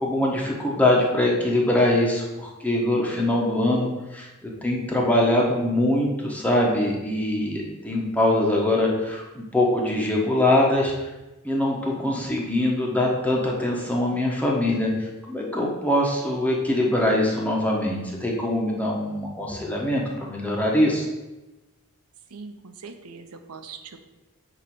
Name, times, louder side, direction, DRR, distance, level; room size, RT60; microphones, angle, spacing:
voice 1, 0.0-10.9 11.4-21.1, left 1 dB, 5° left, -2 dB, 1.2 m, -23 dB
voice 2, 22.3-24.0, right 5 dB, 85° right, 7 dB, 0.7 m, -41 dB
8.9 x 3.0 x 6.1 m, 1.1 s
head